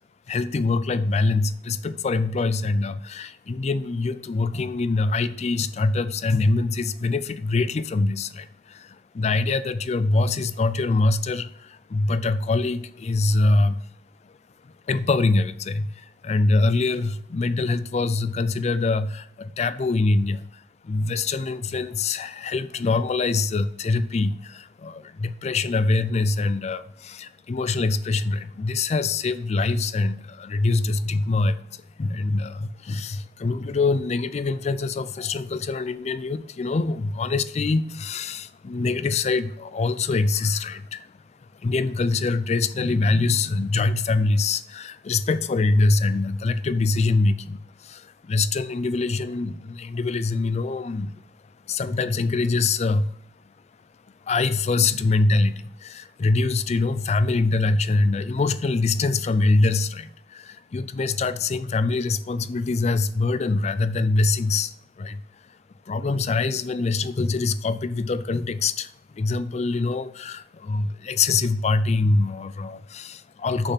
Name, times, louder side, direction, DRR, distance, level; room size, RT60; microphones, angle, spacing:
voice 1, 0.3-13.9 14.2-14.4 14.6-53.2 53.4-53.5 54.2-65.6 65.9-73.7, left 3 dB, 35° left, 0.4 m, -24 dB
6.7 x 5.7 x 5.8 m
head